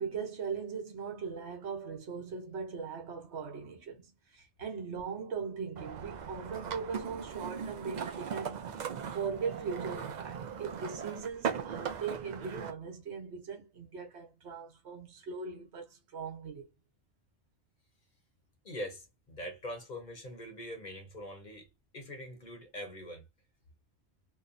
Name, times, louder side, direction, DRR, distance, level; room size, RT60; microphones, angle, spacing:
voice 1, 0.0-8.7 9.1-16.7, right 5 dB, 80° right, 1.1 m, -39 dB
sound 1, 5.8-12.7, right 7 dB, 55° right, 0.5 m, -39 dB
voice 2, 18.6-21.7 21.9-23.2, equal, 45° left, 0.8 m, -43 dB
2.9 x 2.1 x 2.5 m
omnidirectional pair, 1.1 m